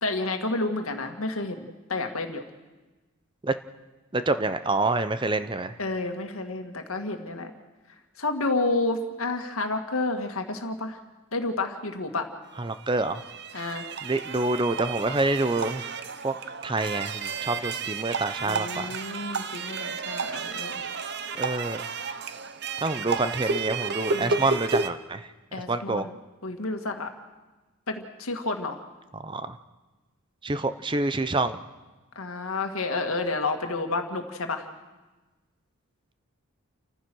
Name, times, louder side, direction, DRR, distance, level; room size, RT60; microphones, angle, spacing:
voice 1, 0.0-2.4 5.8-7.5 8.2-11.0 11.3-12.3 13.5-13.8 18.4-20.8 24.1-24.4 25.5-26.2 26.4-27.1 27.9-28.8 32.2-34.7, left 2 dB, 80° left, 5 dB, 2.0 m, -30 dB
voice 2, 4.1-5.7 12.6-13.2 14.0-15.8 16.2-16.3 16.6-19.0 21.3-21.8 22.8-25.3 25.5-26.0 29.2-29.6 30.4-31.6, right 2 dB, 20° right, 11 dB, 0.6 m, -27 dB
sound 1, 12.6-24.9, right 4 dB, 50° right, 0.8 m, -32 dB
29.5 x 14.5 x 6.2 m, 1.2 s
head